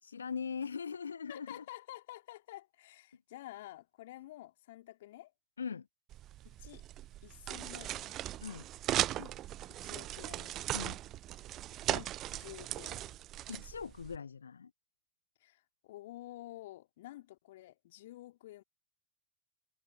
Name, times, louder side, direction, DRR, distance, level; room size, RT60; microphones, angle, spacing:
voice 1, 0.0-1.6 5.6-5.9 8.4-8.7 10.7-11.0 13.5-14.7, left 6 dB, 70° left, 0.9 m, -40 dB
voice 2, 1.3-5.3 6.4-6.8 7.2-8.2 9.2-9.4 9.8-10.5 11.8-13.0 15.4-18.6, left 15 dB, 55° left, 3.3 m, -50 dB
sound 1, 6.1-14.2, right 14 dB, 35° right, 0.8 m, -38 dB
figure-of-eight pair, 90°, 0 cm